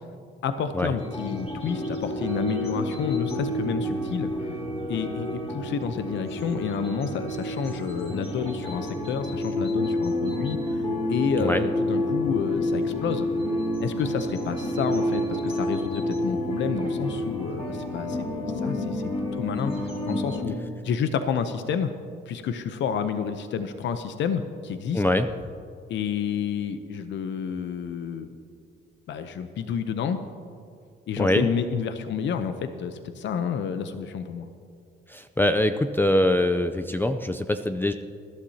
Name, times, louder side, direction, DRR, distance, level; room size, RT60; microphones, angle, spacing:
voice 1, 0.4-4.5 4.9-13.3 13.8-18.2 18.5-19.0 19.3-20.6 20.8-21.9 22.3-25.0 25.9-28.3 29.1-30.2 31.1-34.5, left 7 dB, 70° left, 9 dB, 0.8 m, -29 dB
sound 1, 1.0-20.4, left 1 dB, 30° left, 2.7 m, -29 dB
voice 2, 24.9-25.3 31.2-31.5 35.1-37.9, left 1 dB, 10° left, 8 dB, 0.5 m, -23 dB
20.5 x 11.5 x 2.8 m, 2.4 s
cardioid pair, 90°, 20 cm